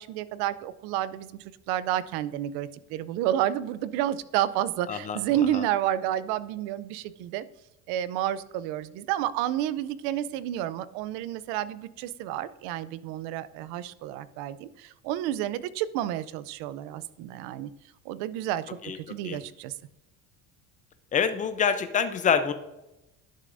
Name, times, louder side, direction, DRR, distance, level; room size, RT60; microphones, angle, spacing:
voice 1, 0.0-7.4 7.9-17.7 18.1-19.7, right 12 dB, 85° right, 17 dB, 0.6 m, -30 dB
voice 2, 21.1-22.5, left 7 dB, 20° left, 10 dB, 0.5 m, -26 dB
11.0 x 6.5 x 2.6 m, 0.94 s
cardioid pair, 150°, 38 cm